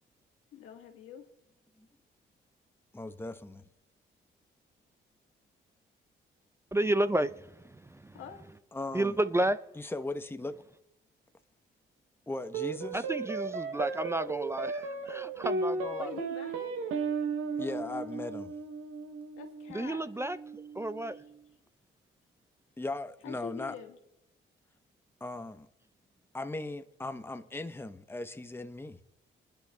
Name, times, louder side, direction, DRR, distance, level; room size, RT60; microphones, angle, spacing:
voice 1, 0.5-1.3 8.1-8.5 16.0-16.8 19.4-20.1 23.2-24.0, left 8 dB, 90° left, 1.5 m, -45 dB
voice 2, 2.9-3.6 8.7-9.2 9.8-10.6 12.3-13.1 17.6-18.5 22.8-23.7 25.2-25.7 26.3-29.0, left 2 dB, 10° left, 0.8 m, -38 dB
voice 3, 6.7-8.2 8.9-9.6 12.9-16.1 19.7-21.2, right 1 dB, 10° right, 0.4 m, -31 dB
sound 1, 12.5-21.2, right 4 dB, 85° right, 0.8 m, -35 dB
21.5 x 10.5 x 2.2 m
supercardioid pair, 65°, 21 cm